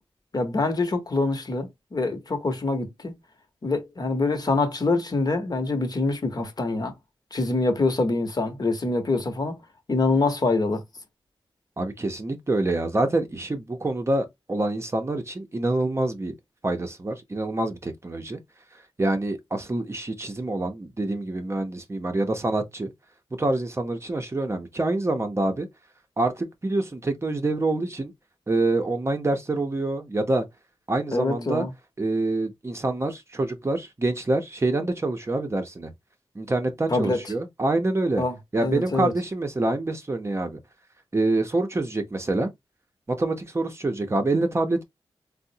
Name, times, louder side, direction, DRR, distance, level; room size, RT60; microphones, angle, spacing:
voice 1, 0.3-3.1 3.6-6.9 7.3-9.6 9.9-10.8 31.1-31.7 36.9-37.2 38.2-39.1, left 3 dB, 45° left, 0.8 m, -25 dB
voice 2, 11.8-16.3 16.6-18.4 19.0-22.9 23.4-25.7 26.2-28.1 28.5-30.4 30.9-31.7 32.0-35.9 36.4-38.2 38.5-40.6 41.1-42.5 43.1-44.8, right 2 dB, 30° right, 0.6 m, -26 dB
3.6 x 2.0 x 2.7 m
wide cardioid pair, 85°, 9 cm